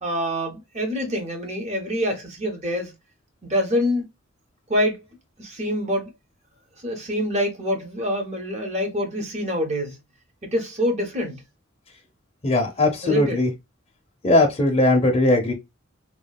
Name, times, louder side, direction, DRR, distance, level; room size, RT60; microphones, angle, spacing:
voice 1, 0.0-2.9 3.4-4.1 4.7-5.0 5.4-6.1 6.8-10.0 10.4-11.4 13.0-13.4, equal, 35° right, 0.8 m, -26 dB
voice 2, 12.4-13.5 14.2-15.5, left 2 dB, 30° left, 0.6 m, -19 dB
2.9 x 2.3 x 2.2 m
head